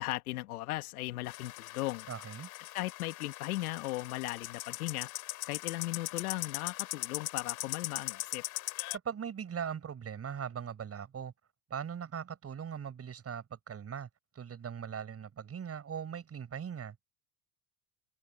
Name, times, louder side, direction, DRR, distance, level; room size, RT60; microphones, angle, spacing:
voice 1, 0.0-2.1 2.7-5.1 5.5-8.4, left 18 dB, 75° left, 1.9 m, -37 dB
sound 1, 1.3-9.0, left 18 dB, 55° left, 2.9 m, -40 dB
voice 2, 2.1-2.5 9.0-11.3 11.7-14.1 14.3-17.0, right 7 dB, 35° right, 7.4 m, -40 dB
hypercardioid pair, 85°, 44 cm